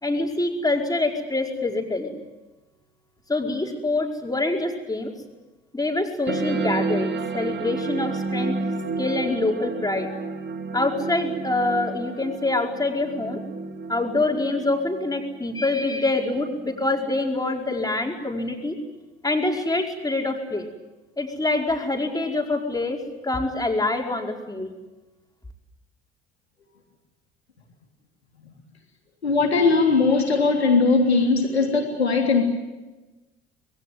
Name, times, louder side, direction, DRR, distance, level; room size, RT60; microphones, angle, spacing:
voice 1, 0.0-2.2 3.3-5.1 5.7-8.6 9.0-10.3 10.7-13.4 13.9-18.8 19.2-20.7 21.2-24.7, left 2 dB, 10° left, 2 dB, 4.9 m, -25 dB
sound 1, 6.3-17.3, right 3 dB, 35° right, 2.5 m, -31 dB
voice 2, 29.2-32.4, left 4 dB, 85° left, 3 dB, 3.4 m, -19 dB
26.0 x 21.5 x 9.4 m, 1.1 s
figure-of-eight pair, 55°, 31 cm